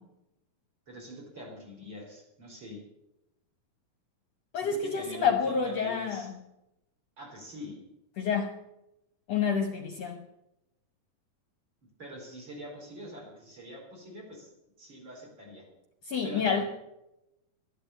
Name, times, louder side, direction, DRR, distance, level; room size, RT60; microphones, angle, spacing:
voice 1, 0.9-2.8 4.5-6.3 7.2-7.8 12.0-14.5 14.8-15.7 16.2-16.6, equal, 35° right, -1 dB, 5.1 m, -44 dB
voice 2, 4.5-6.3 8.2-8.5 9.3-10.2 16.1-16.6, left 6 dB, 65° left, 5 dB, 1.9 m, -28 dB
13.0 x 11.5 x 8.3 m, 0.90 s
omnidirectional pair, 3.7 m